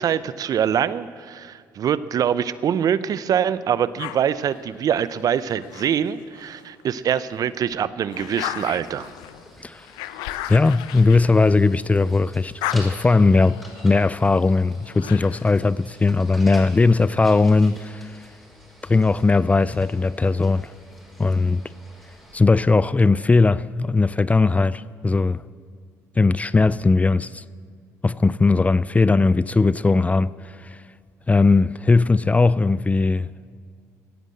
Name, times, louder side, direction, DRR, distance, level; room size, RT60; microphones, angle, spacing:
voice 1, 0.0-9.1, right 9 dB, 55° right, 0.6 m, -24 dB
sound 1, 4.0-6.7 7.2-12.0 12.3-15.6, left 13 dB, 80° left, 0.6 m, -36 dB
sound 2, 8.2-22.4, equal, ahead, 5.2 m, -47 dB
voice 2, 10.5-18.2 18.8-20.7 21.2-21.6 22.3-25.4 26.2-27.4 28.0-30.8 31.3-33.3, left 3 dB, 20° left, 0.4 m, -19 dB
16.5 x 9.1 x 7.8 m
hypercardioid pair, 60°, 8 cm